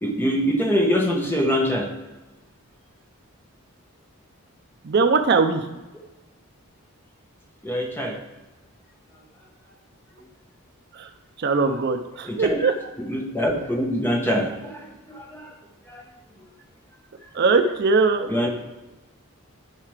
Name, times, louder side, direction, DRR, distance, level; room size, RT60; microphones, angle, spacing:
voice 1, 0.0-1.9 7.6-8.2 12.3-12.7 13.1-15.5 15.9-16.0 18.3-18.5, equal, 10° left, 0 dB, 1.1 m, -24 dB
voice 2, 4.8-5.7 10.9-11.1 11.4-12.7 17.3-18.3, right 4 dB, 50° right, 7 dB, 0.4 m, -20 dB
10.5 x 5.7 x 3.3 m, 1.1 s
head